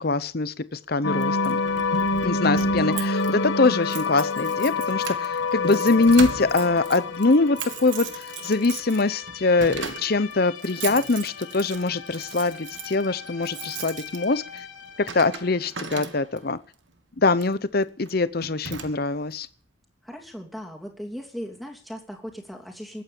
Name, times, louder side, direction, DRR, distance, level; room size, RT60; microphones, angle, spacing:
voice 1, 0.0-1.6 2.2-8.1 8.4-14.4 15.1-16.6 17.2-19.5, left 3 dB, 50° left, 15 dB, 0.8 m, -23 dB
sound 1, 1.0-15.5, left 3 dB, 70° left, 1.8 m, -29 dB
Keys jangling, 1.2-16.6 17.3-17.6 18.0-18.2 18.4-19.3, right 6 dB, 65° right, 1.5 m, -38 dB
voice 2, 2.7-3.2 20.0-23.0, equal, ahead, 0 dB, 2.9 m, -38 dB
21.5 x 8.9 x 7.0 m, 0.43 s
head